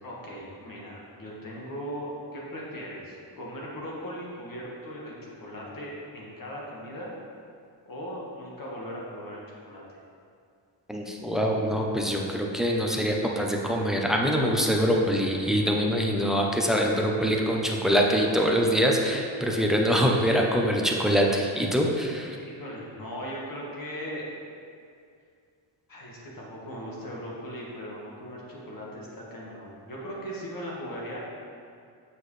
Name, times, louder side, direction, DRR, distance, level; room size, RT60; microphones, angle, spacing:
voice 1, 0.0-7.1 7.9-10.0 22.3-24.2 25.9-31.2, equal, 45° left, -4 dB, 1.7 m, -38 dB
voice 2, 10.9-22.4, equal, ahead, 0 dB, 0.7 m, -24 dB
7.6 x 6.3 x 3.3 m, 2.3 s
cardioid pair, 120°, 47 cm